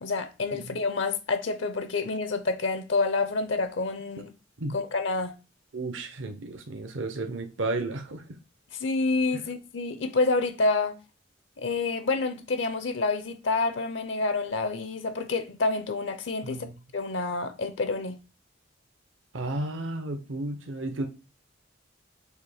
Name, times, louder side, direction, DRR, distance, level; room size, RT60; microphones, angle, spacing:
voice 1, 0.0-4.3 4.7-5.3 8.7-11.0 11.6-16.7 16.9-18.2, left 3 dB, 70° left, 0.7 m, -28 dB
voice 2, 5.7-8.2 9.3-9.4 16.4-16.7 19.3-21.1, right 2 dB, 75° right, 0.8 m, -33 dB
6.5 x 2.9 x 4.9 m
head